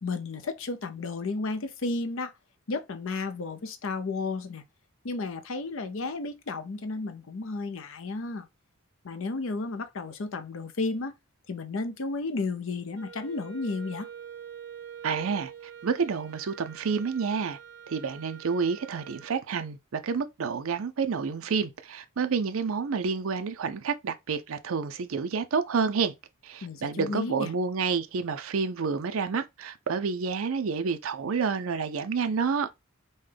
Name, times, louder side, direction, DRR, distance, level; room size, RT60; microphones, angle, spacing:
voice 1, 0.0-2.3 2.7-4.6 5.0-8.5 9.0-11.2 11.5-14.1 26.6-27.5, left 3 dB, 65° left, 0.6 m, -33 dB
Wind instrument woodwind instrument, 12.9-19.4, right 8 dB, 55° right, 1.7 m, -46 dB
voice 2, 15.0-15.5 15.8-17.6 17.9-26.1 26.4-32.7, right 5 dB, 75° right, 0.5 m, -29 dB
5.4 x 2.2 x 3.3 m
head